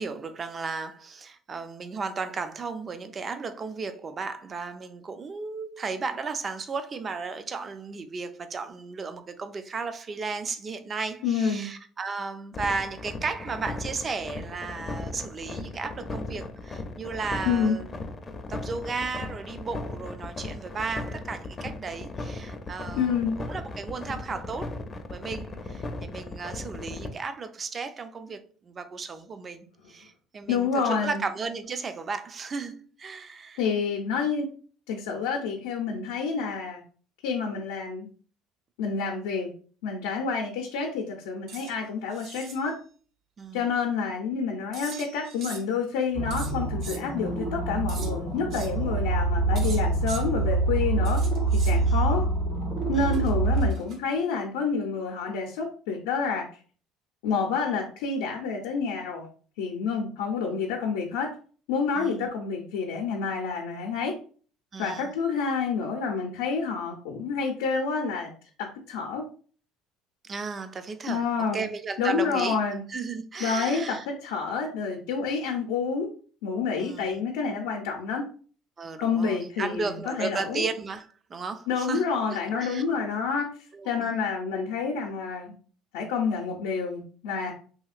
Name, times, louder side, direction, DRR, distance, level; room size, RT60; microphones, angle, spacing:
voice 1, 0.0-17.9 18.5-23.2 23.5-24.8 25.1-33.6 43.4-43.7 51.9-52.1 52.9-53.1 62.0-62.3 64.7-65.1 70.2-71.2 71.5-72.6 72.9-74.1 76.8-77.2 78.8-83.0 83.7-84.1, right 4 dB, 35° right, 0.4 m, -34 dB
voice 2, 11.2-11.7 16.4-16.5 17.5-17.8 23.0-23.3 30.5-31.2 33.6-34.5 34.9-36.8 37.2-38.1 38.8-39.5 39.8-42.7 43.5-51.2 51.6-52.2 52.9-56.4 57.2-59.3 59.6-61.3 61.7-64.1 64.8-68.3 68.6-69.2 71.1-71.6 72.0-72.8 73.4-76.1 76.4-78.2 79.0-80.6 81.7-83.5 83.8-85.5 85.9-87.5, left 5 dB, 90° left, 0.5 m, -28 dB
sound 1, 12.5-27.1, left 2 dB, 30° left, 0.5 m, -36 dB
sound 2, 41.5-41.7 42.1-42.6 44.7-45.8 46.3-47.0 47.9-48.1 48.5-48.7 49.6-50.2 51.0-51.8 53.1-54.2, right 5 dB, 60° right, 0.7 m, -42 dB
sound 3, 46.1-53.7, right 2 dB, 75° right, 1.4 m, -26 dB
2.8 x 2.8 x 2.4 m
supercardioid pair, 95°, 0 cm